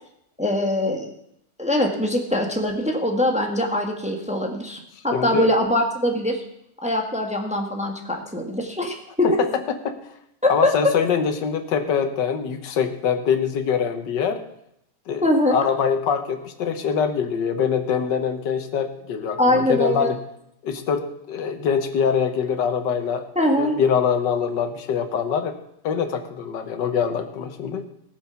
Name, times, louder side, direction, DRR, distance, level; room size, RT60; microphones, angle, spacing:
voice 1, 0.4-1.1 1.6-6.4 6.8-9.3 10.4-10.9 15.2-15.6 19.4-20.1 23.3-23.7, left 1 dB, 5° right, 2 dB, 1.3 m, -22 dB
voice 2, 5.1-5.5 9.2-10.0 10.5-14.4 15.1-20.2 20.6-23.3 23.6-25.6 25.8-27.8, left 7 dB, 85° left, 8 dB, 1.7 m, -24 dB
18.0 x 7.0 x 5.8 m, 0.76 s
omnidirectional pair, 1.9 m